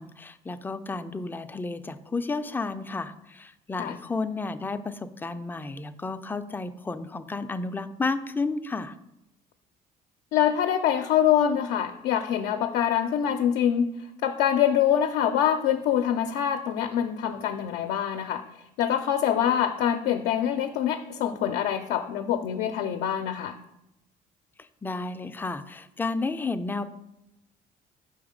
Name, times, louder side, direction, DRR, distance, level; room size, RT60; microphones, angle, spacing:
voice 1, 0.0-8.9 24.6-26.9, left 3 dB, 10° left, 10 dB, 0.3 m, -32 dB
voice 2, 10.3-13.9 14.2-18.4 18.8-23.6, left 9 dB, 85° left, 6 dB, 0.4 m, -25 dB
5.4 x 3.9 x 5.1 m, 0.88 s
cardioid pair, 110°, 17 cm